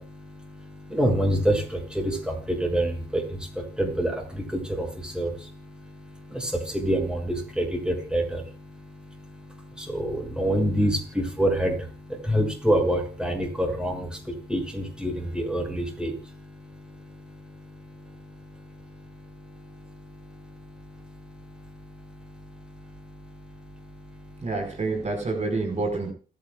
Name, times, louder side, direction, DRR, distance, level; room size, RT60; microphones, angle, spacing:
voice 1, 0.0-24.5, right 1 dB, 5° right, 1 dB, 6.7 m, -29 dB
voice 2, 24.4-26.1, right 3 dB, 35° right, 4 dB, 5.1 m, -28 dB
29.0 x 10.0 x 2.4 m, 0.37 s
cardioid pair, 90°, 20 cm